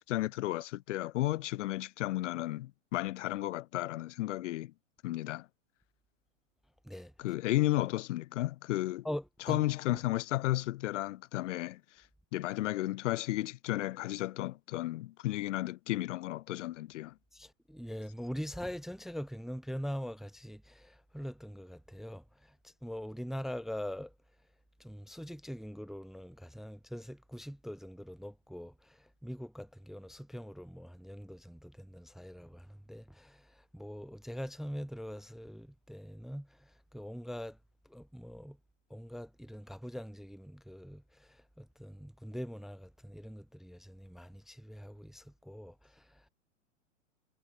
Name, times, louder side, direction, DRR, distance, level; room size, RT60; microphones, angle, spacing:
voice 1, 0.1-4.7 5.0-5.5 7.2-9.1 9.5-12.0 12.3-17.1, left 16 dB, 60° left, 0.5 m, -33 dB
voice 2, 6.8-7.3 9.0-10.0 17.3-24.2 24.8-37.6 37.8-38.6 38.9-46.3, equal, ahead, 0.5 m, -43 dB
hypercardioid pair, 115°, 41 cm